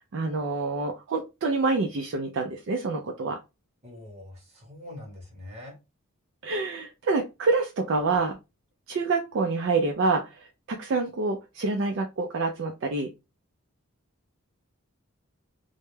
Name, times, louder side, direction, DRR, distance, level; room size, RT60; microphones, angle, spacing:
voice 1, 0.1-3.4 6.4-8.4 8.9-13.1, right 3 dB, 55° right, 3 dB, 0.3 m, -27 dB
voice 2, 3.8-5.8, left 1 dB, 30° right, -1 dB, 1.0 m, -43 dB
2.2 x 2.1 x 3.1 m, 0.25 s
head